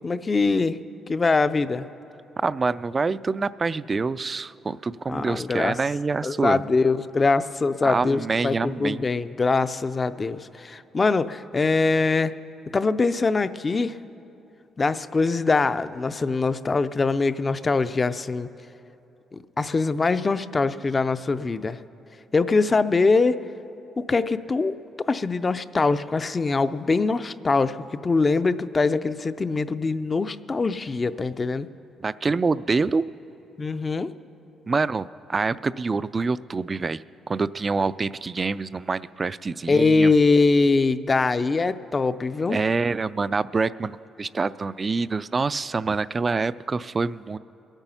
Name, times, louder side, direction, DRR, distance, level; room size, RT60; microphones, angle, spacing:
voice 1, 0.0-0.8 1.1-1.9 5.1-5.7 6.2-12.3 12.7-14.0 14.8-18.5 19.3-21.8 22.3-23.4 24.0-31.7 33.6-34.1 39.7-42.6, left 3 dB, 30° left, 13 dB, 0.4 m, -23 dB
voice 2, 2.4-6.6 7.8-9.0 32.0-33.0 34.7-40.1 42.5-47.4, right 4 dB, 30° right, 17 dB, 0.3 m, -26 dB
22.5 x 9.0 x 5.6 m, 2.8 s
cardioid pair, 90°, 0 cm